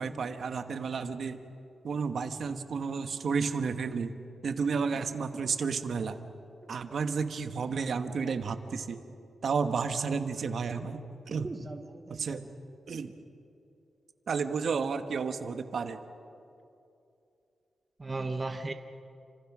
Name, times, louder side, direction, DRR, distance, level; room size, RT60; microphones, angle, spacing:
voice 1, 0.0-1.4 1.8-4.1 4.4-6.2 6.7-9.0 9.4-11.0 11.3-11.5 12.1-12.5 12.9-13.1 14.3-16.0, right 5 dB, 60° right, 8 dB, 1.3 m, -31 dB
voice 2, 11.4-12.4 12.9-13.1 18.0-18.7, right 3 dB, 25° right, 6 dB, 0.9 m, -37 dB
29.5 x 26.0 x 6.2 m, 2.7 s
wide cardioid pair, 145°, 0 cm